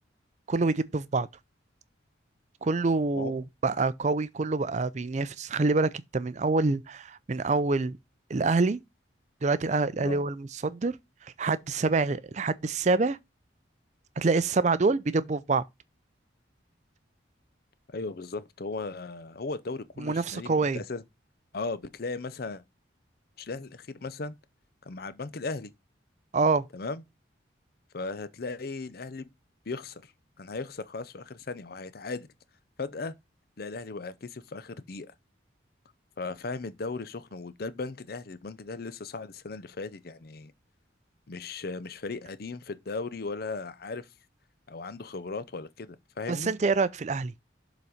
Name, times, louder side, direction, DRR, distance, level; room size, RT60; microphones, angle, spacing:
voice 1, 0.5-1.3 2.6-8.0 8.3-8.8 9.4-11.0 11.2-13.2 14.2-15.6 20.0-20.8 26.3-26.7 46.3-47.3, right 3 dB, 35° right, 0.4 m, -26 dB
voice 2, 17.9-21.0 21.5-22.6 23.4-24.4 24.8-25.7 26.7-27.0 27.9-29.3 29.7-30.1 30.4-32.3 32.8-33.1 33.6-35.1 36.2-40.5 41.3-44.1 44.7-46.5, left 3 dB, 50° left, 0.6 m, -37 dB
7.2 x 4.0 x 4.9 m
head